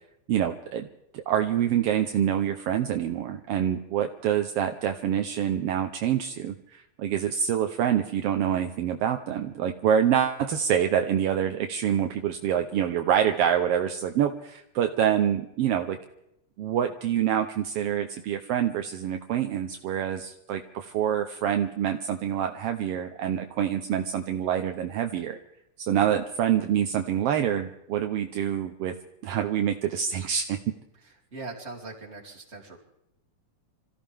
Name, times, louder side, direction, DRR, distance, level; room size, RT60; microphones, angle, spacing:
voice 1, 0.3-0.9 1.1-16.0 16.6-25.4 25.8-28.9 29.2-30.6, right 9 dB, 75° right, 6 dB, 1.4 m, -26 dB
voice 2, 31.3-32.8, right 3 dB, 20° right, -1 dB, 3.0 m, -40 dB
26.5 x 15.0 x 3.6 m, 0.83 s
omnidirectional pair, 3.5 m